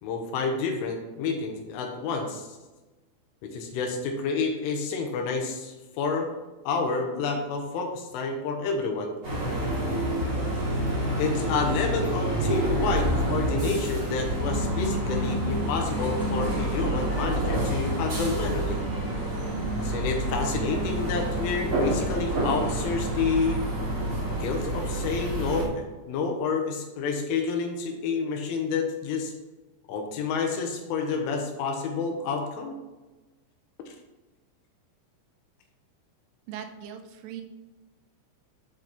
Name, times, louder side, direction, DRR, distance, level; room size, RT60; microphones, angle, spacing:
voice 1, 0.0-2.5 3.5-6.3 6.7-9.1 11.2-18.8 19.8-23.6 24.3-29.3 29.9-32.8, left 4 dB, 85° left, 3 dB, 3.5 m, -29 dB
sound 1, 9.2-25.6, right 1 dB, 20° right, 2.1 m, -28 dB
voice 2, 36.5-37.4, right 9 dB, 85° right, 6 dB, 3.4 m, -39 dB
8.9 x 5.3 x 4.1 m, 1.1 s
omnidirectional pair, 5.7 m